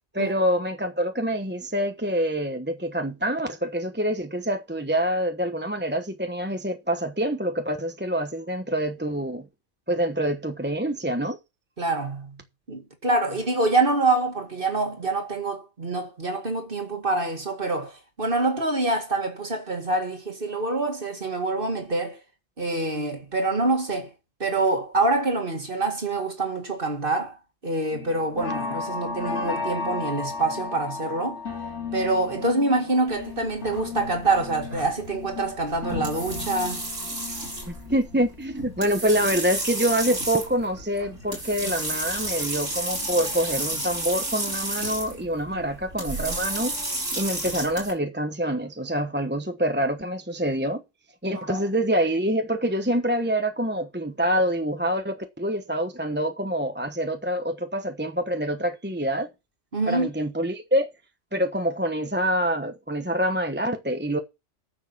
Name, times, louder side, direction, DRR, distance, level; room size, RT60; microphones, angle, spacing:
voice 1, 0.1-9.5 9.9-11.4 37.7-46.8 47.1-50.8 51.2-59.3 59.9-60.9 61.3-64.2, equal, 10° right, 1.0 m, -26 dB
voice 2, 11.8-22.2 22.6-24.1 24.4-27.4 27.6-31.4 31.9-36.9 51.3-51.6 59.7-60.1, right 2 dB, 45° right, 2.4 m, -26 dB
sound 1, 27.9-40.1 40.4-42.0 42.4-42.8 43.1-43.2, left 5 dB, 60° left, 3.1 m, -35 dB
sound 2, 33.1-47.9, right 1 dB, 80° right, 5.4 m, -32 dB
9.9 x 7.3 x 6.1 m
omnidirectional pair, 1.3 m